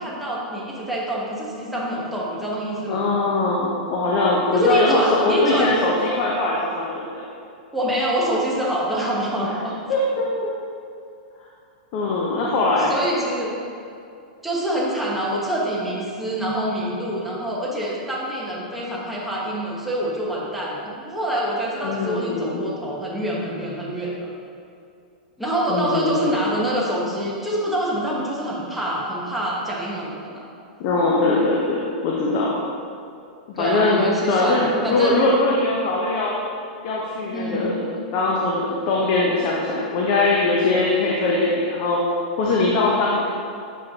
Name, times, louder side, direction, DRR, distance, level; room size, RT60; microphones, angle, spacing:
voice 1, 0.0-3.0 4.5-5.7 7.7-9.8 12.8-13.6 14.4-24.1 25.4-30.4 33.6-35.3 37.3-37.8 43.1-43.2, right 1 dB, ahead, -5 dB, 1.2 m, -25 dB
voice 2, 2.9-7.2 9.9-10.5 11.9-12.9 21.8-22.6 25.7-26.4 30.8-32.6 33.5-36.4 36.8-37.8 38.1-42.0 42.4-43.2, left 2 dB, 45° left, -3 dB, 0.9 m, -21 dB
7.7 x 5.2 x 2.9 m, 2.5 s
hypercardioid pair, 140°, 5 cm